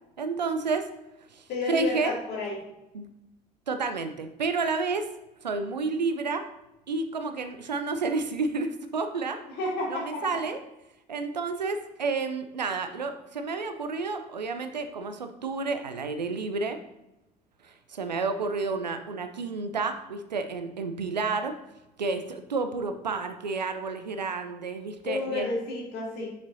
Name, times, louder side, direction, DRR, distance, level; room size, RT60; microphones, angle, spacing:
voice 1, 0.2-0.9 1.3-2.1 2.9-3.1 3.7-5.1 5.4-6.4 6.9-9.4 9.9-10.6 11.1-16.8 17.6-21.5 22.0-25.6, right 4 dB, 85° right, 8 dB, 0.5 m, -30 dB
voice 2, 1.5-2.6 9.5-10.3 25.0-26.3, left 3 dB, 50° left, -2 dB, 2.2 m, -31 dB
6.7 x 6.3 x 2.6 m, 0.93 s
figure-of-eight pair, 55°, 21 cm